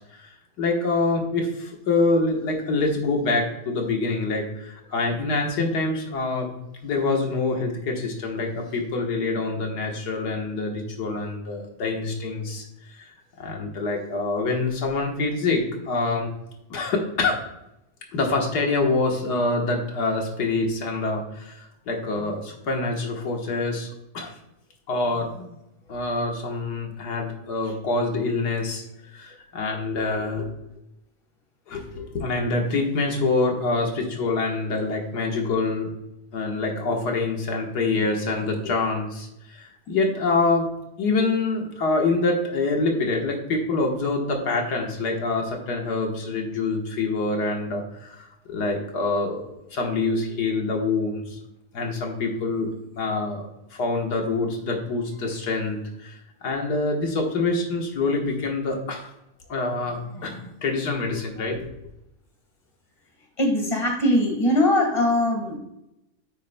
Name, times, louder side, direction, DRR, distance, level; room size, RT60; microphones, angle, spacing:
voice 1, 0.6-6.5 6.8-12.7 13.0-13.1 13.4-16.3 16.7-17.4 18.1-24.3 24.9-25.5 25.9-28.8 29.1-30.5 31.7-35.9 36.3-40.7 41.0-51.4 51.7-53.4 53.7-56.1 56.4-59.1 59.5-61.7, left 3 dB, 90° left, 1 dB, 2.0 m, -26 dB
voice 2, 63.4-65.6, left 1 dB, 20° left, 1 dB, 1.7 m, -21 dB
9.4 x 8.2 x 2.2 m, 0.85 s
omnidirectional pair, 1.7 m